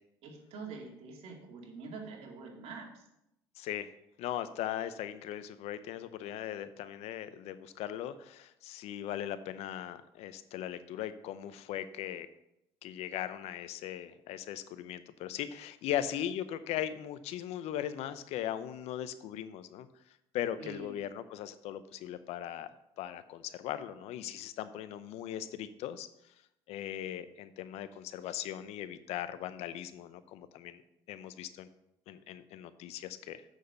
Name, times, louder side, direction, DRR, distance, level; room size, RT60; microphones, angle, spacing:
voice 1, 0.2-3.0 20.6-21.0, right 4 dB, 70° right, 1 dB, 2.5 m, -45 dB
voice 2, 3.6-3.9 4.2-12.3 12.8-19.9 20.3-22.7 23.0-26.1 26.7-30.8 31.1-31.7 32.1-33.4, left 11 dB, 75° left, 13 dB, 0.7 m, -39 dB
7.2 x 6.4 x 6.9 m, 0.83 s
supercardioid pair, 90°, 11 cm